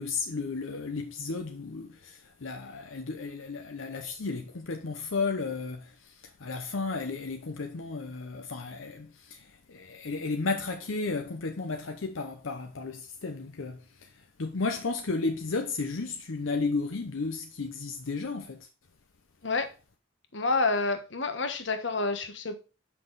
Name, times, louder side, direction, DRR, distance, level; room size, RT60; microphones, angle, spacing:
voice 1, 0.0-18.7, left 3 dB, 90° left, 0.7 m, -33 dB
voice 2, 20.3-22.6, left 3 dB, 65° left, 1.2 m, -28 dB
7.0 x 5.9 x 4.0 m
head